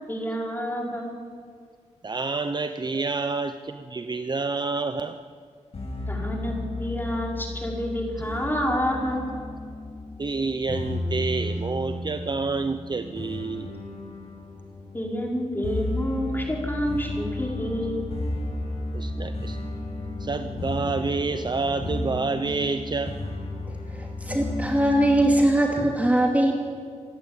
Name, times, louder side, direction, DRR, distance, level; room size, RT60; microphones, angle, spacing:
voice 1, 0.1-1.1 6.1-9.2 14.9-18.0, equal, 15° left, -1 dB, 5.4 m, -28 dB
voice 2, 2.0-5.2 10.2-13.7 18.9-19.6 20.2-23.2, right 3 dB, 35° right, 9 dB, 0.8 m, -28 dB
sound 1, 5.7-25.5, left 2 dB, 55° left, 5.8 m, -33 dB
voice 3, 23.9-26.5, right 1 dB, 10° right, 0 dB, 2.5 m, -21 dB
26.5 x 12.0 x 9.0 m, 2.1 s
cardioid pair, 85°, 12 cm